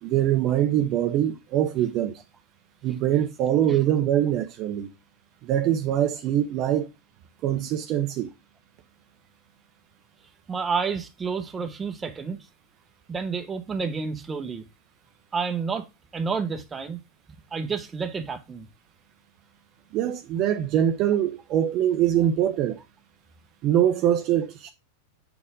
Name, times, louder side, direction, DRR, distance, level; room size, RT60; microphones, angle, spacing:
voice 1, 0.0-2.1 2.8-4.9 5.4-6.9 7.4-8.3 19.9-22.8 23.6-24.7, right 11 dB, 45° right, 0.8 m, -23 dB
voice 2, 10.5-12.4 13.1-14.6 15.3-15.9 16.1-17.0 17.5-18.7, right 5 dB, 20° right, 1.0 m, -29 dB
6.8 x 4.4 x 3.6 m
hypercardioid pair, 105°, 0 cm